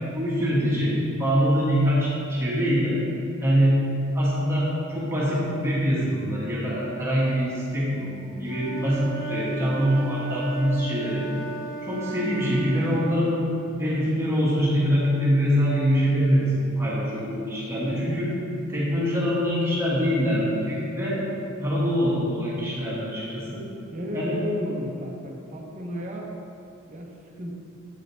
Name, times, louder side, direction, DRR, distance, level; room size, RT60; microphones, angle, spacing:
voice 1, 0.1-3.0 3.4-3.8 4.1-11.3 11.8-13.5 13.8-16.5 16.8-18.3 18.7-21.2 21.6-23.6 24.1-24.4, equal, 10° right, -8 dB, 1.5 m, -24 dB
Wind instrument woodwind instrument, 8.5-13.1, right 3 dB, 15° left, 0.9 m, -35 dB
voice 2, 23.9-26.3 26.9-27.5, left 1 dB, 35° right, -1 dB, 0.8 m, -33 dB
7.7 x 6.2 x 3.1 m, 2.9 s
head